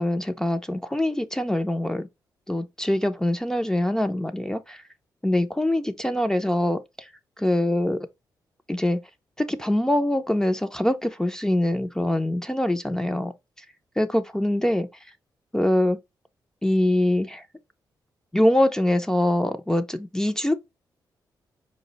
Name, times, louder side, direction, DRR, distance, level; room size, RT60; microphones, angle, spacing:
voice 1, 0.0-2.1 2.5-4.8 5.2-7.1 7.4-8.0 8.7-9.0 9.4-13.3 14.0-14.9 15.5-16.0 16.6-17.4 18.3-20.5, left 1 dB, 5° left, 0.4 m, -23 dB
4.7 x 2.1 x 3.8 m
cardioid pair, 80°, 8 cm